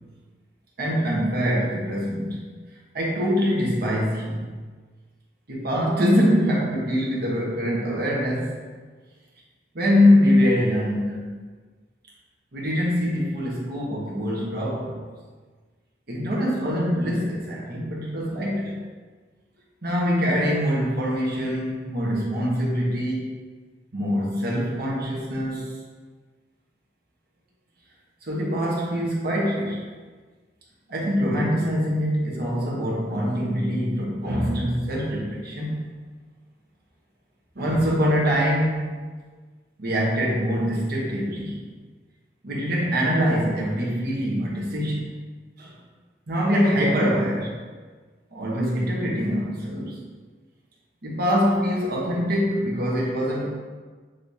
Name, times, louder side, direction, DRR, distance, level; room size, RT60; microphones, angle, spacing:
voice 1, 0.8-2.5 2.9-4.5 5.5-8.5 9.7-11.4 12.5-15.0 16.1-18.8 19.8-23.3 23.9-25.7 28.2-29.8 30.9-35.8 37.5-39.0 39.8-41.6 42.4-45.0 45.6-45.7 46.3-47.6 48.3-50.0 51.0-53.5, equal, 55° right, -4 dB, 1.1 m, -24 dB
6.5 x 3.0 x 2.7 m, 1.4 s
head